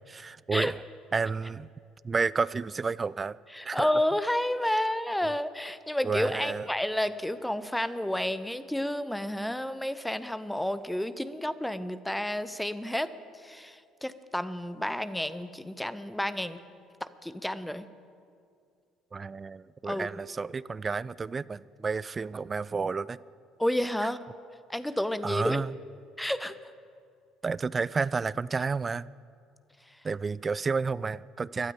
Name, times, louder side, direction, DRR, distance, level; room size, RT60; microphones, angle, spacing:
voice 1, 0.1-0.8 1.1-1.7 2.0-3.4 3.6-3.9 5.2-5.3 6.0-6.7 19.1-23.2 24.0-24.1 25.2-25.7 27.4-29.1 30.0-31.7, right 4 dB, 25° right, 20 dB, 0.3 m, -31 dB
voice 2, 3.5-13.1 13.4-16.6 17.0-17.9 19.9-20.1 23.6-24.2 24.7-25.6 26.2-26.6, left 1 dB, 5° left, 14 dB, 0.7 m, -30 dB
22.0 x 12.0 x 5.1 m, 2.4 s
figure-of-eight pair, 55°, 0 cm